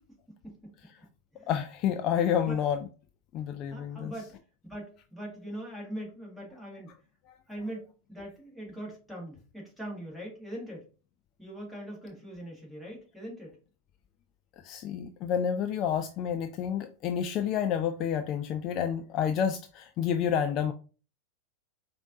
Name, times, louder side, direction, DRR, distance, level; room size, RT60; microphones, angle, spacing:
voice 1, 1.5-2.8 3.3-4.1 7.3-7.4 14.6-20.7, left 8 dB, 35° left, 0.3 m, -29 dB
voice 2, 3.7-4.4 4.7-6.9 7.5-10.9 11.4-13.6, right 1 dB, ahead, 1.7 m, -41 dB
5.0 x 2.5 x 2.6 m
figure-of-eight pair, 90°, 0 cm